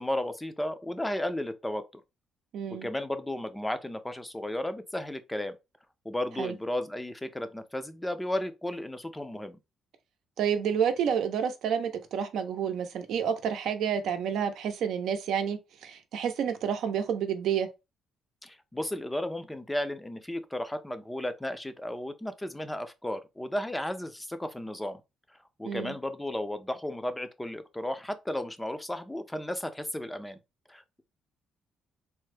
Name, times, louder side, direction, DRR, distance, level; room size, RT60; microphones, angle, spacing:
voice 1, 0.0-2.0 2.7-5.6 6.0-9.6 18.4-25.0 25.6-30.4 30.7-31.0, left 1 dB, 10° left, 0.5 m, -34 dB
voice 2, 2.5-2.9 6.4-6.5 10.4-17.7 25.6-25.9, right 8 dB, 80° right, 0.6 m, -29 dB
3.4 x 2.0 x 3.2 m
cardioid pair, 90°, 0 cm